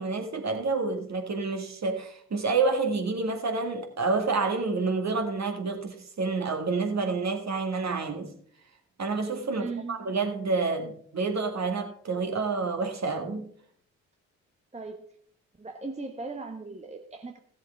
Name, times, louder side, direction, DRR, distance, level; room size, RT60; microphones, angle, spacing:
voice 1, 0.0-8.3 9.0-13.4, right 4 dB, 40° right, 2.2 m, -28 dB
voice 2, 9.5-10.1 14.7-15.0 15.6-17.4, right 4 dB, 15° right, 1.2 m, -38 dB
16.0 x 7.4 x 3.5 m
hypercardioid pair, 40°, 42 cm